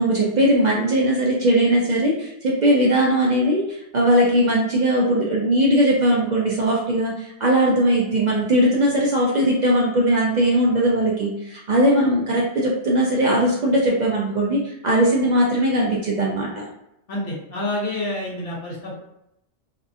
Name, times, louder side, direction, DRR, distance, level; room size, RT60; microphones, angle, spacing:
voice 1, 0.0-16.7, right 1 dB, 55° right, -4 dB, 0.5 m, -19 dB
voice 2, 17.1-19.0, left 1 dB, 55° left, -6 dB, 1.3 m, -28 dB
2.7 x 2.4 x 2.5 m, 0.82 s
omnidirectional pair, 1.2 m